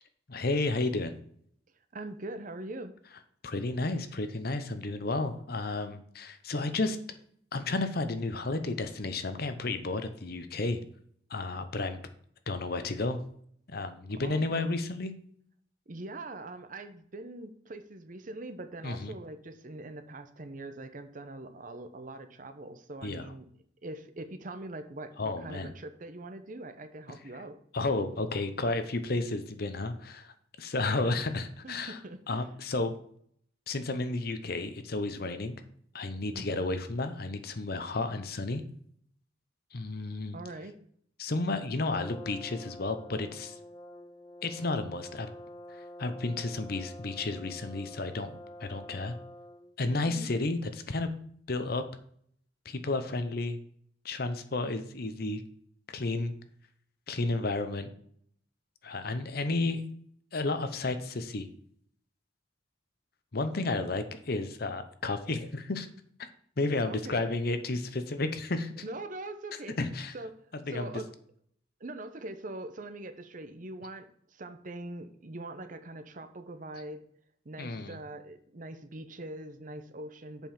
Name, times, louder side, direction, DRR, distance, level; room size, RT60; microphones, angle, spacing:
voice 1, 0.3-1.1 3.4-7.0 7.5-10.8 11.3-12.0 12.5-13.2 13.7-15.1 18.8-19.1 23.0-23.3 25.2-25.7 27.7-30.3 30.6-32.0 32.3-32.9 33.7-35.6 35.9-38.6 39.7-40.4 41.2-43.6 44.4-45.3 46.0-49.1 49.8-51.1 51.5-51.8 52.6-53.6 54.0-55.4 55.9-56.3 57.1-57.9 58.8-59.8 60.3-61.5 63.3-65.9 66.6-68.7 69.8-70.1 70.7-70.9 77.6-78.0, left 2 dB, 55° left, 10 dB, 0.8 m, -32 dB
voice 2, 1.9-2.9 14.1-14.7 15.9-23.5 23.8-27.6 31.0-31.2 31.6-32.5 36.3-36.6 40.3-40.8 50.0-50.3 66.8-67.3 68.8-69.8 70.1-70.4 70.7-71.1 71.8-77.0 77.4-80.5, right 2 dB, 45° right, 10 dB, 0.8 m, -42 dB
Brass instrument, 41.9-49.7, left 1 dB, 20° left, 0.5 m, -47 dB
7.3 x 5.4 x 5.7 m, 0.63 s
head